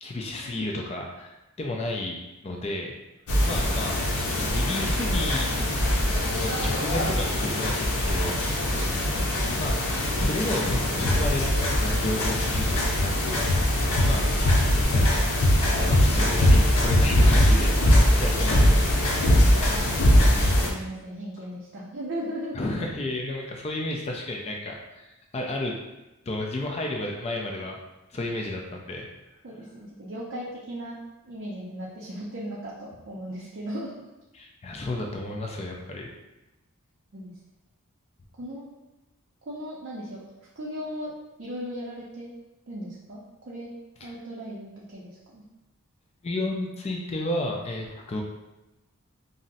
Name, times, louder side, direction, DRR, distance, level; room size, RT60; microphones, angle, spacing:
voice 1, 0.0-2.2 2.4-2.9 3.4-5.7 6.4-8.6 9.4-13.5 14.1-14.3 14.9-15.3 15.9-18.8 22.5-25.7 26.3-27.8 28.1-29.1 34.3-36.1 44.0-44.1 46.2-48.2, left 1 dB, 30° left, 1 dB, 0.3 m, -32 dB
sound 1, 3.3-20.7, left 1 dB, 80° left, 0.6 m, -22 dB
voice 2, 8.7-9.1 16.9-17.8 19.3-22.6 29.4-31.0 31.2-34.0 37.1-37.3 38.4-38.6 39.5-40.2 40.6-41.1 41.4-42.3 42.7-43.2 43.5-43.7 44.0-45.4, equal, 50° right, -6 dB, 0.5 m, -37 dB
2.5 x 2.0 x 3.9 m, 1.0 s
head